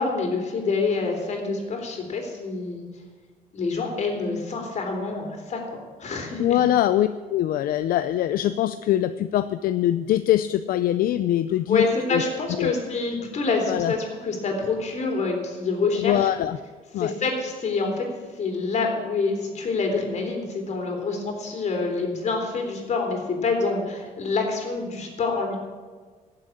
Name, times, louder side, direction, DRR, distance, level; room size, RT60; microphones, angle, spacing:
voice 1, 0.0-2.8 3.5-6.6 11.7-16.3 17.0-18.1 18.4-25.6, left 4 dB, 50° left, 2 dB, 3.8 m, -26 dB
voice 2, 6.4-12.2 12.5-12.8 13.7-13.9 15.9-16.6 16.9-17.1, left 12 dB, 75° left, 11 dB, 0.5 m, -23 dB
16.5 x 7.5 x 8.6 m, 1.5 s
cardioid pair, 110°, 15 cm